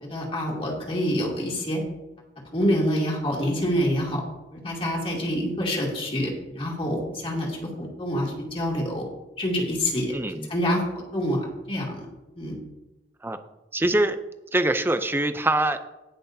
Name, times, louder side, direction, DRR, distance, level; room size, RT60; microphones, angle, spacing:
voice 1, 0.0-1.8 2.5-4.2 4.5-9.1 9.4-10.1 10.5-11.4 11.7-12.0 12.4-12.5, equal, 30° left, -2 dB, 2.5 m, -26 dB
voice 2, 10.1-10.5 13.2-13.4 13.7-14.2 14.5-15.8, right 1 dB, 15° right, 9 dB, 0.5 m, -23 dB
18.5 x 6.2 x 2.7 m, 1.0 s
head